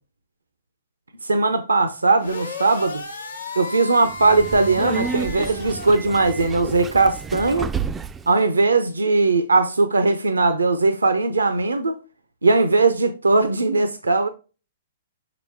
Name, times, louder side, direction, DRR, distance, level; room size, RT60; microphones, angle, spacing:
voice 1, 1.2-3.0 3.6-7.7 8.3-12.0 12.4-14.3, right 3 dB, 90° right, 0.6 m, -19 dB
sound 1, 2.2-5.9, left 2 dB, 90° left, 1.0 m, -34 dB
Subway metro underground, 4.1-8.3, right 6 dB, 15° right, 0.3 m, -31 dB
6.2 x 4.9 x 3.4 m
hypercardioid pair, 120°, 0 cm